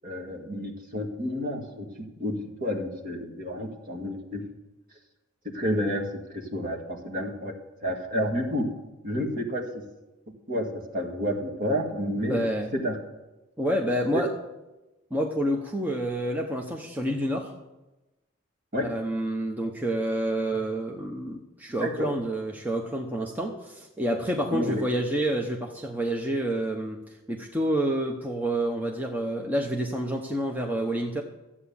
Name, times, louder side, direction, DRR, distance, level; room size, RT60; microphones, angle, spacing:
voice 1, 0.0-4.4 5.4-7.5 7.8-8.7 9.0-9.8 10.5-12.4 12.7-13.0 14.1-14.2 18.7-18.9 21.8-22.1 24.5-24.8, equal, 40° right, 1 dB, 2.0 m, -30 dB
voice 2, 12.3-12.7 13.6-14.3 15.1-17.5 18.8-27.0 27.3-31.2, right 1 dB, 10° right, 0 dB, 0.9 m, -28 dB
13.5 x 8.6 x 7.1 m, 1.0 s
head